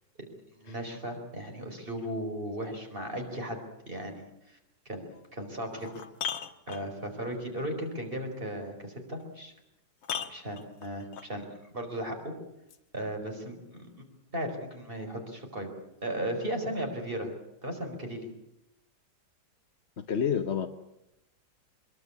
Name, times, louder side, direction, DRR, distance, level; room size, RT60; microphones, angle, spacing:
voice 1, 0.6-3.6 3.9-4.6 4.8-5.0 5.3-5.9 6.7-9.5 10.3-11.5 11.7-12.3 12.9-13.9 14.3-15.7 16.0-17.3 17.6-18.3, right 1 dB, 30° right, 4 dB, 4.9 m, -36 dB
sound 1, 5.1-5.2 5.7-7.2 9.2-9.3 10.0-11.3 12.7-12.8, left 7 dB, 90° left, 2.1 m, -37 dB
voice 2, 20.0-20.7, left 7 dB, 45° left, 6 dB, 1.1 m, -29 dB
24.0 x 22.0 x 8.5 m, 0.87 s
omnidirectional pair, 2.0 m